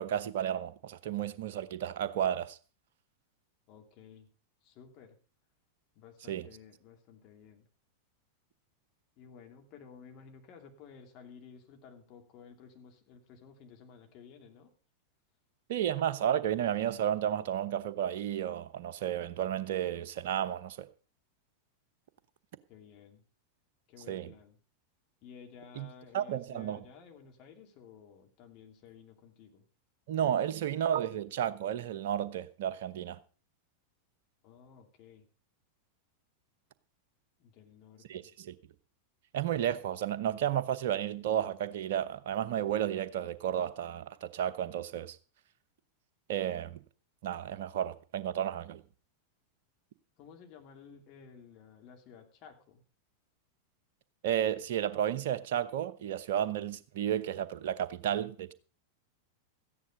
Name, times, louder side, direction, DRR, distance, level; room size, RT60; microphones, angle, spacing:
voice 1, 0.0-2.6 6.3-6.5 15.7-20.9 24.1-24.3 25.8-25.9 26.1-26.8 30.1-33.2 38.1-38.5 39.3-45.2 46.3-46.8 47.2-48.8 54.2-58.5, right 10 dB, 55° right, 0.9 m, -32 dB
voice 2, 3.7-4.3 4.6-5.2 5.9-7.7 9.2-14.7 22.7-23.2 23.9-24.6 25.2-29.6 34.4-35.3 37.4-38.3 50.2-52.8, left 6 dB, 40° left, 2.7 m, -54 dB
14.0 x 10.0 x 5.3 m
figure-of-eight pair, 90°, 0 cm